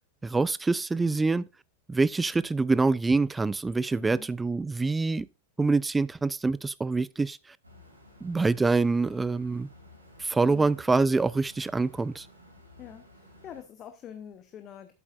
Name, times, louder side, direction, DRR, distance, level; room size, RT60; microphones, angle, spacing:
voice 1, 0.2-1.5 1.9-5.3 5.6-7.4 8.2-9.7 10.2-12.3, right 3 dB, 10° right, 0.3 m, -25 dB
sound 1, 7.6-13.6, left 1 dB, 80° right, 2.7 m, -54 dB
voice 2, 12.8-14.9, left 9 dB, 30° left, 0.9 m, -45 dB
11.0 x 8.4 x 2.5 m
figure-of-eight pair, 90°, 0 cm